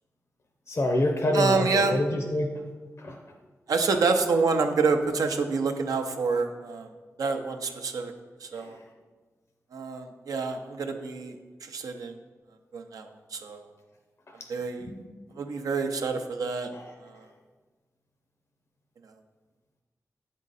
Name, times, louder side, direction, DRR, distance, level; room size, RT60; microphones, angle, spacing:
voice 1, 0.7-2.6 3.0-3.2 3.9-4.0 8.6-8.8 14.8-15.1 16.7-16.9, left 1 dB, 50° left, 3 dB, 0.6 m, -27 dB
voice 2, 1.3-2.0 3.7-6.9 7.2-8.1 8.4-8.8 9.7-11.3 11.6-12.1 12.7-13.6 14.5-14.8 15.4-16.7 17.0-17.1, right 4 dB, 90° right, 5 dB, 0.5 m, -27 dB
7.3 x 3.7 x 4.0 m, 1.4 s
cardioid pair, 50°, 6 cm